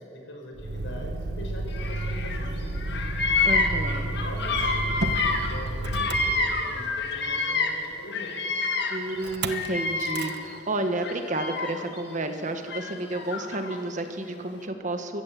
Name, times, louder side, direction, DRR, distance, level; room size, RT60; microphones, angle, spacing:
voice 1, 0.0-3.0 3.8-8.4, left 1 dB, 80° left, 1 dB, 5.2 m, -42 dB
Motor vehicle (road), 0.5-7.0 9.2-9.7 10.0-10.4, right 2 dB, 60° right, 1.1 m, -31 dB
Bird vocalization bird call bird song, 1.7-2.5 2.8-7.8 8.1-10.5 11.0-12.0 12.7-13.8, left 3 dB, 60° left, 2.2 m, -28 dB
voice 2, 3.4-4.0 8.9-15.2, right 2 dB, 40° right, 7 dB, 1.5 m, -31 dB
24.0 x 15.5 x 7.7 m, 2.6 s
head